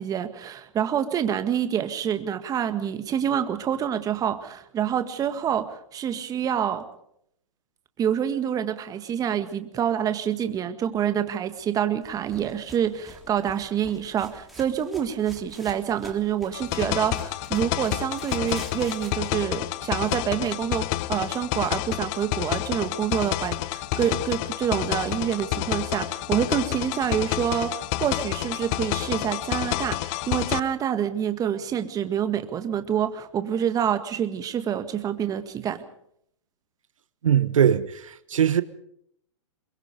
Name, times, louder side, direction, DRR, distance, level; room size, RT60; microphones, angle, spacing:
voice 1, 0.0-6.9 8.0-35.8, right 9 dB, 20° right, 1.8 m, -27 dB
sound 1, 12.0-19.1, right 1 dB, ahead, 3.4 m, -46 dB
sound 2, 16.5-30.6, left 17 dB, 35° left, 0.8 m, -29 dB
voice 2, 37.2-38.6, right 9 dB, 80° right, 1.1 m, -21 dB
22.5 x 22.0 x 5.2 m
hypercardioid pair, 125°, 17 cm